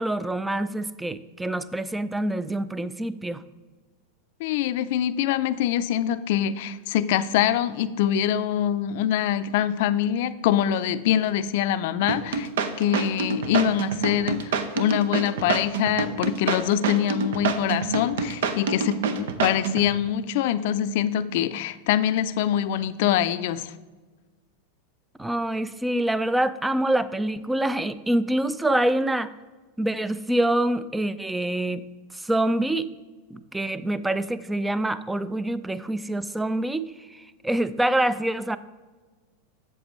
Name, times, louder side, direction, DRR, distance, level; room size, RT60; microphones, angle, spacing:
voice 1, 0.0-3.4 25.2-29.3 29.8-31.9 32.1-32.9 33.3-36.8 37.1-38.6, right 1 dB, 5° right, 15 dB, 0.4 m, -26 dB
voice 2, 4.4-12.5 12.8-23.7, left 10 dB, 65° left, 13 dB, 0.4 m, -24 dB
sound 1, 12.1-19.9, right 5 dB, 80° right, 0.7 m, -26 dB
8.0 x 7.2 x 3.1 m, 1.3 s
hypercardioid pair, 115°, 0 cm